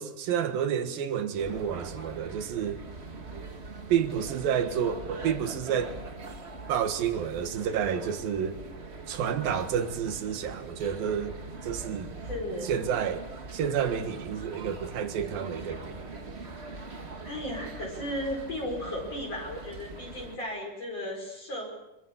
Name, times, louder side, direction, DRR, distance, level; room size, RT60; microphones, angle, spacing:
voice 1, 0.0-2.8 3.9-6.0 6.7-8.6 9.1-11.4 11.6-12.1 12.6-13.3 13.5-16.0, right 8 dB, 75° right, 3.4 m, -30 dB
sound 1, 1.4-20.4, right 3 dB, 35° right, 0.9 m, -42 dB
voice 2, 12.2-12.7 16.9-21.7, left 1 dB, 45° left, 6.2 m, -35 dB
25.5 x 23.5 x 7.3 m
omnidirectional pair, 4.2 m